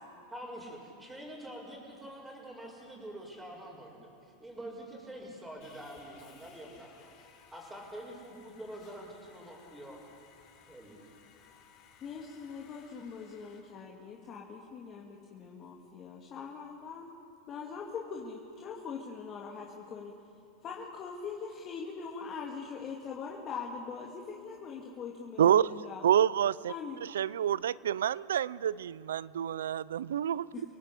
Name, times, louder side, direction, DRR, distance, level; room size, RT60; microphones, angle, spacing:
voice 1, 0.3-10.0 10.7-11.0, right 1 dB, 5° right, -9 dB, 5.6 m, -46 dB
Sawing, 5.6-13.6, left 7 dB, 50° left, 6.4 m, -60 dB
voice 2, 12.0-17.1 17.5-20.1 20.6-26.0 26.7-27.0 30.5-30.6, left 5 dB, 30° left, -2 dB, 2.5 m, -42 dB
voice 3, 25.4-26.7 27.1-30.5, right 10 dB, 90° right, 21 dB, 0.5 m, -28 dB
29.0 x 18.0 x 8.4 m, 2.6 s
supercardioid pair, 130°, 0 cm